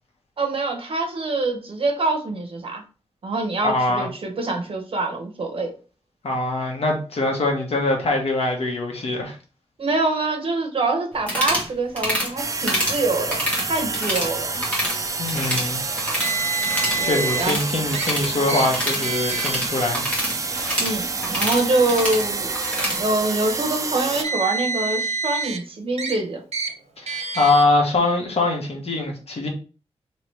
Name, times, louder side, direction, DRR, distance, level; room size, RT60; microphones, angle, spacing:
voice 1, 0.4-2.8 3.2-5.7 9.8-14.6 17.0-17.6 20.8-22.6 23.0-26.4, right 2 dB, 55° right, 0.9 m, -25 dB
voice 2, 3.6-4.1 6.2-9.4 15.2-15.8 17.0-20.0 27.0-29.5, left 2 dB, 70° left, 1.0 m, -23 dB
sound 1, 11.2-11.7 12.0-12.3 12.6-13.0 13.3-14.3 14.5-15.0 15.2-16.3 16.6-23.0, equal, 10° left, 1.4 m, -27 dB
sound 2, 12.4-24.2, right 4 dB, 30° right, 0.3 m, -28 dB
Car, 16.2-17.5 17.9-18.1 18.5-18.7 19.0-19.6 20.4-20.6 21.6-21.7 23.9-25.6 26.0-26.2 26.5-26.7 27.1-27.6, right 4 dB, 85° right, 0.6 m, -27 dB
3.0 x 2.9 x 3.1 m
wide cardioid pair, 145°, 11 cm